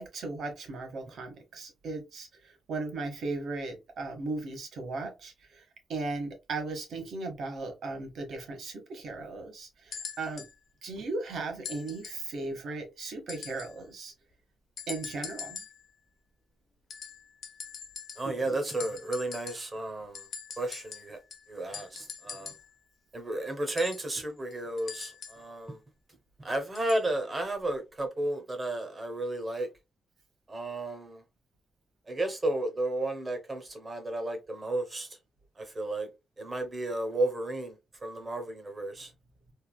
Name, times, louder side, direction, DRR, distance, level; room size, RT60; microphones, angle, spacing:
voice 1, 0.0-10.5 10.8-14.1 14.9-15.6, right 3 dB, 70° right, 1.0 m, -37 dB
sound 1, 9.9-10.5 11.6-12.3 13.3-13.8 14.8-15.9 16.9-18.4 18.7-19.8 20.1-22.7 23.8-25.5 26.7-27.1 28.0-28.1, left 6 dB, 60° left, 0.6 m, -43 dB
voice 2, 18.2-20.3 20.6-21.2 21.5-22.5 23.1-25.8 26.4-29.7 30.5-31.2 32.1-35.1 35.6-36.1 36.4-39.1, right 2 dB, 25° right, 0.8 m, -33 dB
3.3 x 2.3 x 2.2 m
wide cardioid pair, 145°, 0 cm